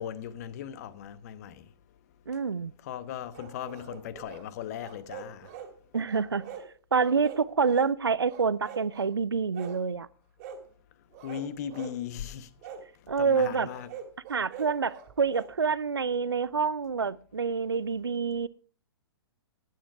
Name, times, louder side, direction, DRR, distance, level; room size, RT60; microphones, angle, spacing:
voice 1, 0.0-1.7 2.8-5.5 11.2-12.5 13.2-13.9, left 9 dB, 40° left, 1.0 m, -38 dB
voice 2, 2.3-2.7 5.9-6.4 6.9-10.1 13.1-13.7 14.3-18.5, right 5 dB, 70° right, 0.7 m, -27 dB
sound 1, 3.3-4.4 4.8-5.7 6.1-6.7 7.0-7.9 8.2-9.1 9.5-9.8 10.4-10.6 11.1-12.0 12.6-12.8 13.7-15.5, right 7 dB, 35° right, 2.4 m, -44 dB
13.0 x 9.5 x 4.7 m
figure-of-eight pair, 115°, 13 cm